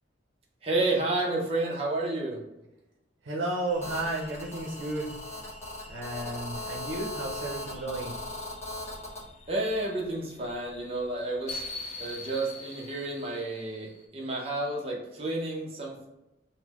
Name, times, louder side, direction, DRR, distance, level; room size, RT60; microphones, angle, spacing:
voice 1, 0.6-2.4 9.5-11.6 12.0-16.1, right 2 dB, 30° right, -2 dB, 0.7 m, -30 dB
voice 2, 3.2-5.1 5.9-8.2, right 2 dB, 80° right, -3 dB, 0.6 m, -33 dB
sound 1, 3.7-14.0, left 2 dB, 35° left, 0.5 m, -46 dB
Telephone, 3.8-9.2, left 1 dB, 15° left, 0.8 m, -38 dB
3.8 x 2.1 x 3.0 m, 0.94 s
head